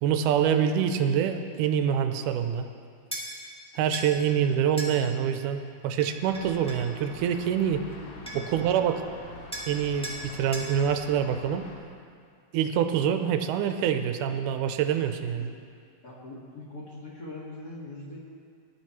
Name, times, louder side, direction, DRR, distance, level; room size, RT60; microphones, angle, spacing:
voice 1, 0.0-2.7 3.8-7.8 8.3-9.0 9.7-11.6 12.5-15.5, right 8 dB, 80° right, 7 dB, 2.0 m, -26 dB
sound 1, 3.1-3.3 3.9-4.1 4.8-4.9 6.0-6.9 7.9-8.0 8.3-8.6 9.5-9.7 10.0-10.2 10.5-10.7, right 1 dB, 5° left, 0.4 m, -37 dB
sound 2, 6.2-11.8, left 3 dB, 65° left, 1.5 m, -46 dB
voice 2, 7.9-8.7 15.0-15.6 16.0-18.2, left 2 dB, 40° left, -6 dB, 1.4 m, -43 dB
19.0 x 10.5 x 3.1 m, 2.2 s
omnidirectional pair, 3.9 m